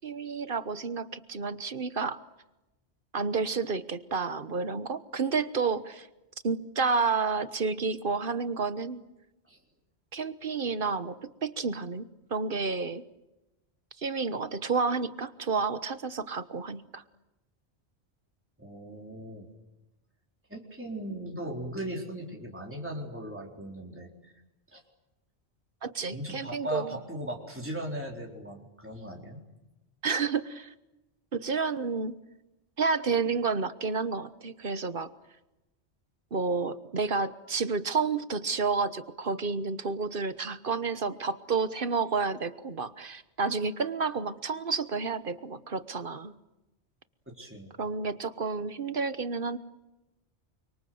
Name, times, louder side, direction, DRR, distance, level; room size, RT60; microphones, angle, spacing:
voice 1, 0.0-2.2 3.1-6.1 6.4-9.0 10.1-13.0 14.0-17.0 25.8-27.0 30.0-30.7 31.3-32.1 32.8-35.1 36.3-46.3 47.8-49.6, right 4 dB, 50° right, 13 dB, 1.3 m, -30 dB
voice 2, 18.6-19.5 20.5-24.3 24.7-24.8 26.1-29.4 47.3-47.7, right 1 dB, 10° right, -1 dB, 4.2 m, -38 dB
28.5 x 25.0 x 7.9 m, 0.98 s
omnidirectional pair, 1.1 m